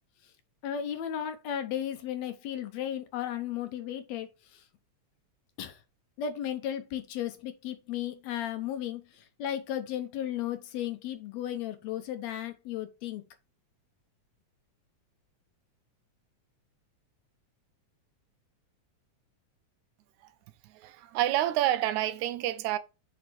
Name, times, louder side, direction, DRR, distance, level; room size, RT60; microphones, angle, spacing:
voice 1, 0.6-4.6 5.6-5.8 6.2-13.2, left 10 dB, 75° left, 1.9 m, -35 dB
voice 2, 20.6-22.8, right 13 dB, 80° right, 1.9 m, -28 dB
6.1 x 5.3 x 3.0 m
omnidirectional pair, 3.4 m